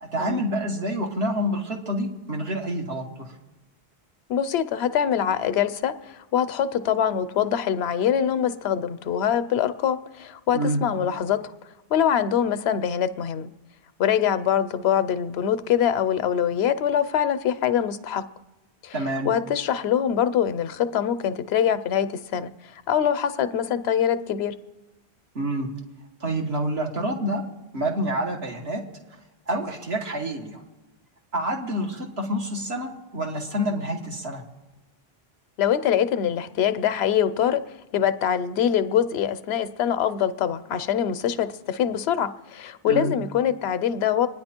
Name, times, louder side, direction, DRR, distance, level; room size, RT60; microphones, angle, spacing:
voice 1, 0.0-3.3 10.5-10.8 18.9-19.3 25.4-25.7 26.2-27.4 27.7-28.8 29.5-30.6 31.3-34.4 42.9-43.1, right 1 dB, 80° right, 1 dB, 2.2 m, -27 dB
voice 2, 4.3-11.5 11.9-13.5 14.0-18.2 18.8-18.9 19.2-24.5 35.6-37.6 37.9-44.3, left 9 dB, 80° left, 12 dB, 0.9 m, -24 dB
25.5 x 10.0 x 4.4 m, 1.1 s
omnidirectional pair, 1.1 m